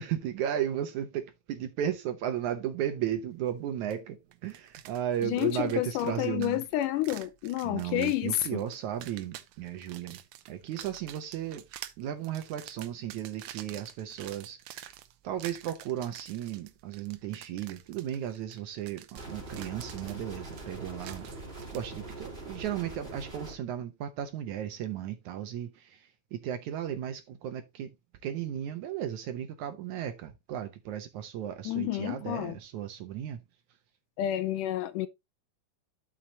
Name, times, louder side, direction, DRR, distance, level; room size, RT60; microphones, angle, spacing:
voice 1, 0.0-6.6 7.6-10.2 10.5-11.6 12.0-14.8 15.2-21.3 21.7-26.0 26.3-27.9 28.2-33.4, right 10 dB, 70° right, 2.0 m, -35 dB
sound 1, 3.9-4.0 4.3-21.8, right 12 dB, 90° right, 1.5 m, -48 dB
voice 2, 5.2-8.6 31.7-32.6 34.2-35.1, left 14 dB, 80° left, 2.0 m, -30 dB
sound 2, 19.2-23.5, right 2 dB, 20° right, 1.7 m, -43 dB
12.0 x 6.4 x 2.8 m
omnidirectional pair, 4.0 m